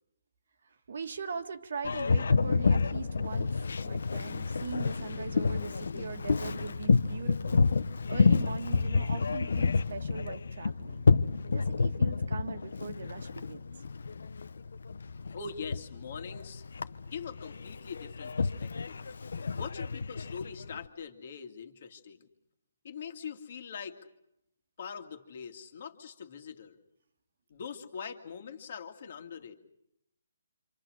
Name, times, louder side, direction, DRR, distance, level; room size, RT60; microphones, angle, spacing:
voice 1, 0.9-7.7 8.1-11.0 11.5-13.6, right 5 dB, 50° right, 8 dB, 1.9 m, -40 dB
Boat Water vehicle, 1.8-20.8, left 4 dB, 75° left, 1.2 m, -29 dB
voice 2, 15.3-16.6 17.1-19.1 19.5-22.2 22.8-24.0 24.8-26.8 27.5-29.6, left 6 dB, 35° left, 6 dB, 2.3 m, -43 dB
28.0 x 27.0 x 6.5 m, 0.79 s
hypercardioid pair, 180°, 0 cm